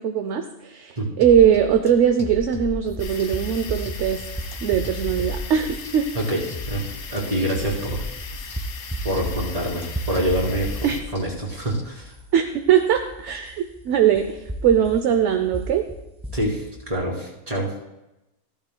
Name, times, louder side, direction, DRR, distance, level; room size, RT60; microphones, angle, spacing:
voice 1, 0.0-4.2 4.6-6.1 10.8-11.0 12.3-15.9, right 9 dB, 60° right, 6 dB, 0.9 m, -20 dB
sound 1, 1.2-11.8, left 2 dB, 25° left, 0.9 m, -36 dB
sound 2, 3.0-11.0, left 6 dB, 75° left, 1.5 m, -39 dB
sound 3, 3.0-16.9, right 1 dB, 5° right, 0.7 m, -36 dB
voice 2, 6.7-8.0 9.0-12.1 16.3-17.7, right 1 dB, 25° right, -3 dB, 2.7 m, -26 dB
14.5 x 14.0 x 2.2 m, 0.95 s
omnidirectional pair, 1.6 m